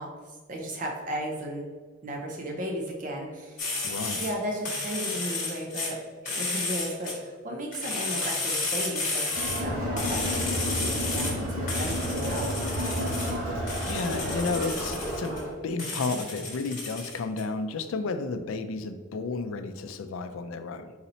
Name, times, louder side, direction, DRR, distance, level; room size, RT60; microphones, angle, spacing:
voice 1, 0.0-1.6 2.0-3.8 4.2-6.0 6.3-12.6, right 1 dB, 35° right, 0 dB, 0.6 m, -35 dB
sound 1, 3.6-4.3 4.6-5.9 6.3-7.2 7.7-9.7 10.0-11.3 11.7-13.3 13.7-15.4 15.8-17.4, left 3 dB, 35° left, 1.2 m, -32 dB
voice 2, 3.8-4.2 13.8-20.9, left 3 dB, 70° left, 9 dB, 0.4 m, -32 dB
Crowd, 9.3-15.6, equal, 70° right, 1.5 m, -31 dB
4.0 x 2.7 x 4.2 m, 1.5 s
head